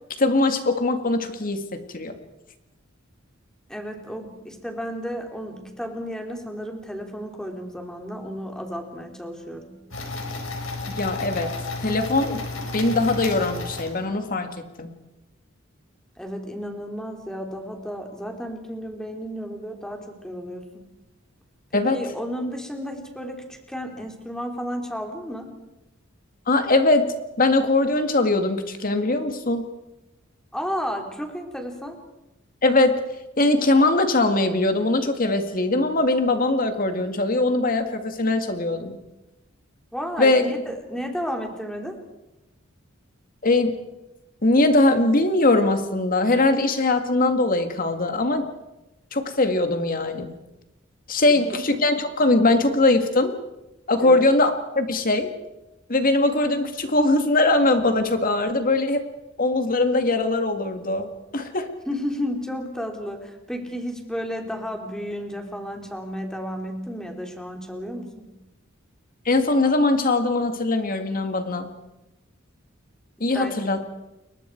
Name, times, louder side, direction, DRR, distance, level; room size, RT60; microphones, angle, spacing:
voice 1, 0.2-2.2 10.9-11.5 11.8-12.4 12.7-14.9 21.7-22.0 26.5-29.6 32.6-33.0 33.4-39.0 40.2-40.4 43.4-43.8 44.4-48.4 49.1-50.3 51.1-53.3 53.9-55.3 55.9-59.0 59.4-61.1 61.3-61.7 69.3-71.7 73.2-73.8, left 2 dB, 45° left, 7 dB, 2.2 m, -21 dB
voice 2, 3.7-9.8 16.2-20.9 21.7-25.5 30.5-32.0 39.9-42.0 51.3-51.6 54.0-54.3 61.9-68.3 73.3-73.6, equal, 5° left, 3 dB, 3.1 m, -32 dB
sound 1, 9.9-14.3, left 3 dB, 85° left, 4.5 m, -32 dB
30.0 x 22.5 x 4.7 m, 0.95 s
head